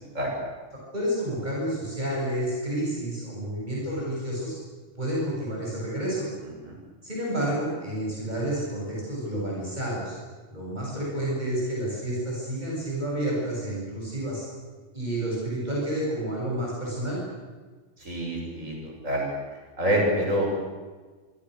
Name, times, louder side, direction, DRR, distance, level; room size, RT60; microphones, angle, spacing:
voice 1, 0.9-4.6 5.0-6.2 7.0-10.1 10.5-14.5 14.9-17.2, right 1 dB, 35° right, -5 dB, 8.2 m, -30 dB
voice 2, 18.0-19.3 19.8-20.6, equal, 85° right, -1 dB, 7.5 m, -26 dB
25.5 x 25.0 x 6.7 m, 1.3 s
omnidirectional pair, 1.3 m